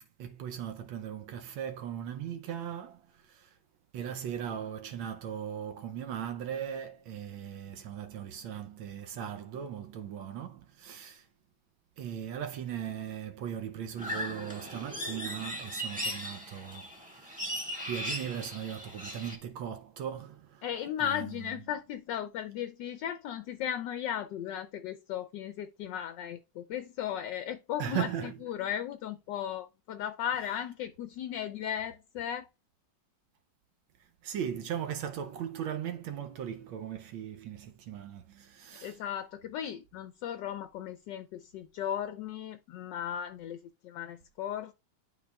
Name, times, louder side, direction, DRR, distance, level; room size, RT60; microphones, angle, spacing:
voice 1, 0.0-3.6 3.9-11.3 12.0-17.5 17.8-20.6 21.0-21.6 27.8-28.4 34.0-39.0, right 9 dB, 80° right, 1.4 m, -38 dB
sound 1, 14.0-19.4, equal, 5° right, 1.3 m, -38 dB
voice 2, 20.6-32.5 38.8-44.7, left 10 dB, 75° left, 1.1 m, -36 dB
11.5 x 4.3 x 2.3 m
omnidirectional pair, 2.2 m